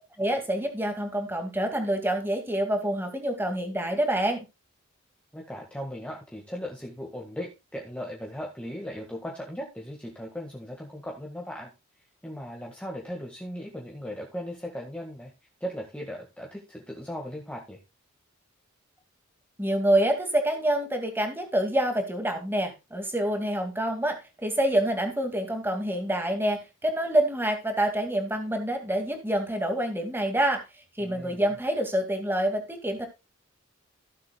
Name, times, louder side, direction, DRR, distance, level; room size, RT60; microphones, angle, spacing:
voice 1, 0.2-4.5 19.6-30.6 31.0-33.1, right 1 dB, 10° right, 5 dB, 2.2 m, -27 dB
voice 2, 5.3-11.7 12.2-15.3 15.6-17.8 31.0-31.5, equal, 5° left, -1 dB, 1.7 m, -37 dB
16.0 x 7.6 x 2.3 m, 0.26 s
head